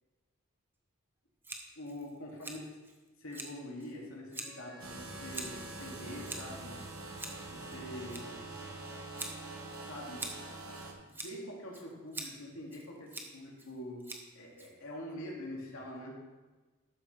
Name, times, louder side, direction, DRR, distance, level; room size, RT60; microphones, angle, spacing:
Scissors, 1.4-15.1, right 2 dB, 10° right, 0.9 m, -47 dB
voice 1, 1.8-2.6 3.2-6.8 7.5-8.4 9.8-10.3 11.0-16.2, left 1 dB, 70° left, -2 dB, 2.4 m, -45 dB
Wind instrument woodwind instrument, 4.3-8.1, left 1 dB, 30° left, 1.7 m, -56 dB
sound 1, 4.8-10.9, right 2 dB, 85° right, 1.5 m, -45 dB
12.0 x 8.9 x 3.3 m, 1.2 s
head